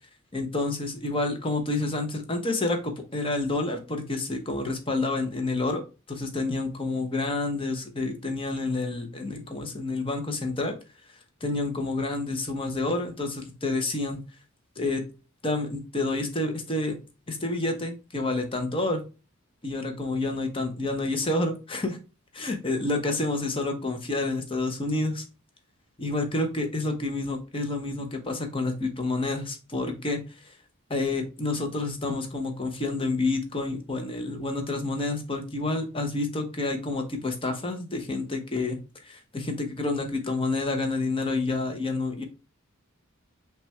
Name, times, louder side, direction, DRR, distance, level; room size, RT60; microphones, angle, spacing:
voice 1, 0.3-5.8 6.1-10.8 11.4-14.2 14.8-15.0 15.4-17.0 17.3-19.0 19.6-22.0 22.3-25.2 26.0-30.2 30.9-38.8 39.0-42.2, left 2 dB, 25° left, 5 dB, 0.8 m, -29 dB
5.6 x 2.4 x 3.2 m, 0.31 s
head